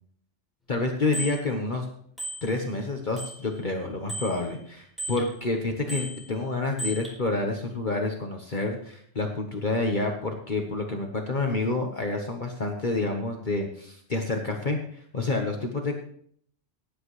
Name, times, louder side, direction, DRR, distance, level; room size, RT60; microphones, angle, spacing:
voice 1, 0.7-1.9 2.4-16.0, left 3 dB, 40° left, 2 dB, 1.4 m, -28 dB
Bicycle bell, 1.1-1.4 2.2-2.8 3.2-5.3 5.9-7.2, right 2 dB, ahead, 4.3 m, -37 dB
18.5 x 10.5 x 3.2 m, 0.63 s
omnidirectional pair, 1.2 m